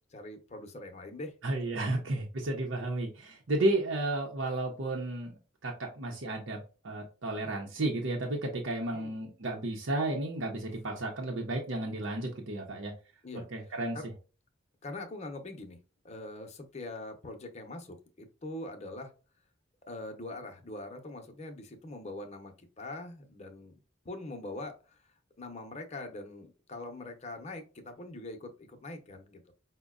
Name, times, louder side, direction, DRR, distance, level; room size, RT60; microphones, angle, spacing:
voice 1, 0.1-1.3 8.9-9.1 13.2-13.5 13.9-14.0 14.8-15.8 16.0-19.1 19.9-23.8 24.0-25.0 25.4-29.5, left 2 dB, 35° left, 5 dB, 0.7 m, -43 dB
voice 2, 1.4-5.3 5.6-6.6 6.8-12.9 13.5-14.0, right 2 dB, 85° right, 0 dB, 0.8 m, -32 dB
5.2 x 2.2 x 2.3 m, 0.35 s
head